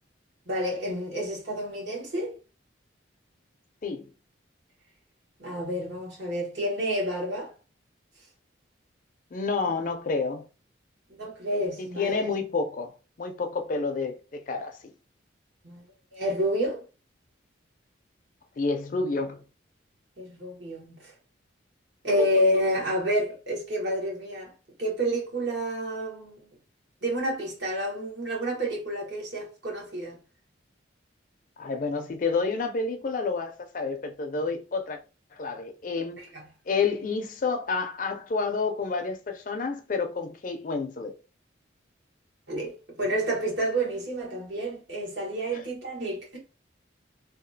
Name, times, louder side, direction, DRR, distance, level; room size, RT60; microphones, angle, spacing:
voice 1, 0.5-2.4 5.4-7.5 11.1-12.3 15.6-15.8 16.1-16.8 20.2-21.1 22.0-24.5 24.8-26.3 27.0-30.2 36.3-36.4 42.5-46.4, equal, 65° right, 1.2 m, -29 dB
voice 2, 9.3-10.5 11.8-12.9 13.2-14.9 18.6-19.4 22.2-22.3 31.6-35.0 35.3-36.2 36.7-41.1 45.5-45.6, left 4 dB, 45° left, 0.4 m, -29 dB
2.8 x 2.3 x 2.6 m
head